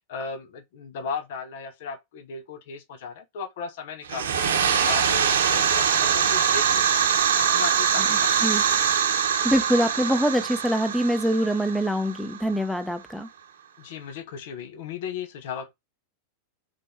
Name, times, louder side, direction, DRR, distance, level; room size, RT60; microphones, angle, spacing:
voice 1, 0.1-4.5 4.8-8.5 13.8-15.7, left 6 dB, 55° left, 1.2 m, -36 dB
sound 1, 4.0-12.6, right 7 dB, 65° right, 1.1 m, -23 dB
voice 2, 9.4-13.3, equal, ahead, 0.8 m, -24 dB
5.4 x 4.2 x 4.3 m
figure-of-eight pair, 90°, 0 cm